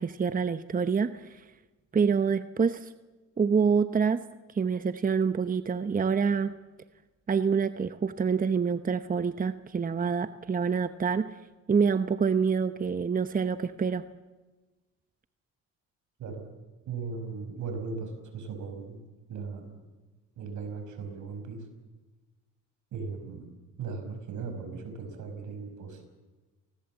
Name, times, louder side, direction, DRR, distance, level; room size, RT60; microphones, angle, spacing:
voice 1, 0.0-1.4 1.9-2.9 3.4-4.2 4.5-6.6 7.3-11.3 11.7-14.0, right 6 dB, 30° right, 11 dB, 0.9 m, -26 dB
voice 2, 16.9-19.8 20.4-21.7 22.9-23.5 23.8-26.1, right 5 dB, 75° right, 7 dB, 5.6 m, -38 dB
29.5 x 20.0 x 7.4 m, 1.2 s
cardioid pair, 90°, 30 cm